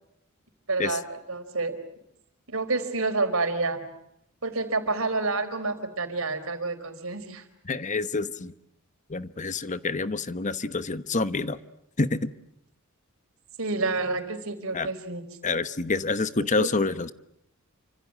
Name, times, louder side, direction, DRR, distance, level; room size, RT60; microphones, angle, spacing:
voice 1, 0.7-1.7 2.5-3.8 4.4-7.4 13.6-15.2 16.4-16.7, right 3 dB, 70° right, 7 dB, 4.4 m, -29 dB
voice 2, 7.6-8.5 9.1-11.6 12.0-12.3 14.7-14.9 15.4-17.1, left 3 dB, 35° left, 13 dB, 1.0 m, -27 dB
29.0 x 26.0 x 7.5 m, 0.78 s
head